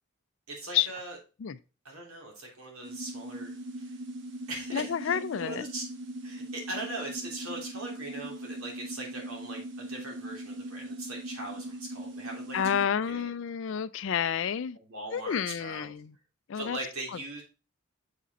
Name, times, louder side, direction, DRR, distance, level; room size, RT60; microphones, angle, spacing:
voice 1, 0.5-1.2 1.8-3.9 4.5-5.8 6.2-13.3 14.7-15.9 16.5-17.4, right 2 dB, 90° right, 3.0 m, -40 dB
sound 1, 2.8-12.9, right 1 dB, 55° right, 1.0 m, -40 dB
voice 2, 4.7-5.6 12.5-14.8 15.1-16.1 16.5-16.8, left 8 dB, 65° left, 0.4 m, -29 dB
6.8 x 5.0 x 4.1 m
head